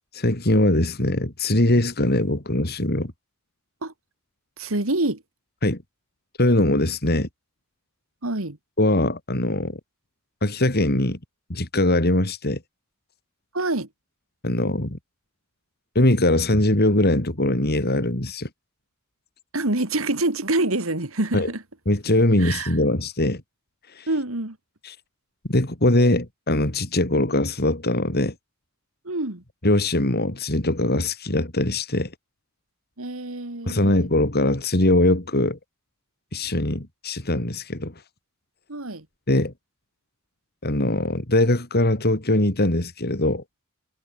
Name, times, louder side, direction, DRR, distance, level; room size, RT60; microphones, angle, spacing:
voice 1, 0.1-3.1 5.6-5.8 6.4-7.3 8.8-9.8 10.4-11.2 11.5-12.6 14.4-15.0 16.0-18.5 21.3-21.5 21.9-23.4 24.0-24.1 24.8-25.0 25.5-28.3 29.6-32.1 33.7-35.6 36.3-37.9 39.3-39.5 40.6-43.4, left 1 dB, 50° left, 3.5 m, -21 dB
voice 2, 4.6-5.2 8.2-8.6 13.5-13.9 19.5-21.6 22.4-22.7 24.1-24.6 29.0-29.4 33.0-34.1 38.7-39.1, right 2 dB, 75° right, 2.8 m, -26 dB
head